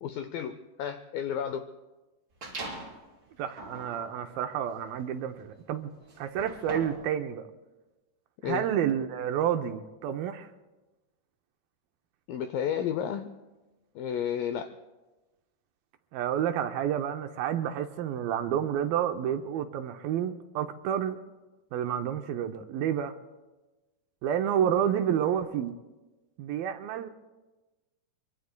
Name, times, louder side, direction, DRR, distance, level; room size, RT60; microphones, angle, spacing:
voice 1, 0.0-1.7 8.4-8.7 12.3-13.3 14.0-14.7, left 8 dB, 85° left, 10 dB, 2.0 m, -32 dB
sound 1, 2.4-3.0 3.5-7.1, right 2 dB, 30° right, 4.4 m, -42 dB
voice 2, 3.4-5.9 6.2-7.4 8.4-10.5 16.1-21.2 21.7-23.2 24.2-25.7 26.4-27.1, right 9 dB, 80° right, 6 dB, 2.2 m, -29 dB
25.0 x 24.0 x 2.2 m, 1.1 s
omnidirectional pair, 4.7 m